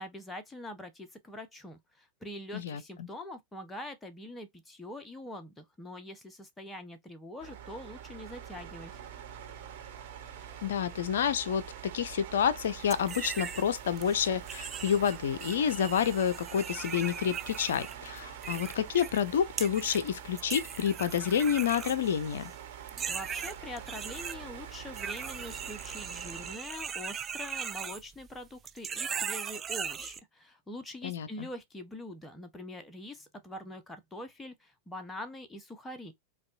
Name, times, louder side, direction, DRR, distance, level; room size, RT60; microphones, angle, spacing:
voice 1, 0.0-9.0 23.1-36.1, left 1 dB, 10° left, 0.7 m, -44 dB
voice 2, 2.5-3.1 10.6-22.5 31.0-31.5, left 8 dB, 60° left, 0.4 m, -29 dB
sound 1, 7.4-26.6, right 9 dB, 50° right, 1.2 m, -45 dB
sound 2, 12.9-13.6 14.0-19.2 19.6-20.1 20.4-22.5 22.9-24.4 24.9-28.4 28.6-30.2, right 7 dB, 20° right, 0.3 m, -39 dB
5.1 x 2.3 x 2.5 m
figure-of-eight pair, 90°, 0 cm